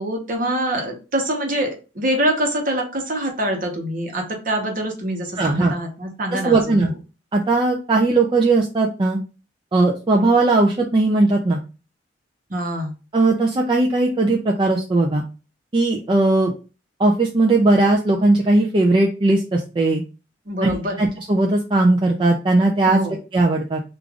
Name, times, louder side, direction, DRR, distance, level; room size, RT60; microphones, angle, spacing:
voice 1, 0.0-6.9 12.5-12.9 20.5-21.0 22.9-23.1, right 1 dB, 50° right, 2 dB, 0.9 m, -25 dB
voice 2, 5.4-5.7 6.3-6.9 7.3-9.2 9.7-11.6 13.1-15.2 15.7-16.5 17.0-20.0 20.6-23.0 23.3-23.8, right 2 dB, 25° right, -1 dB, 0.4 m, -18 dB
4.8 x 2.5 x 2.4 m, 0.32 s
head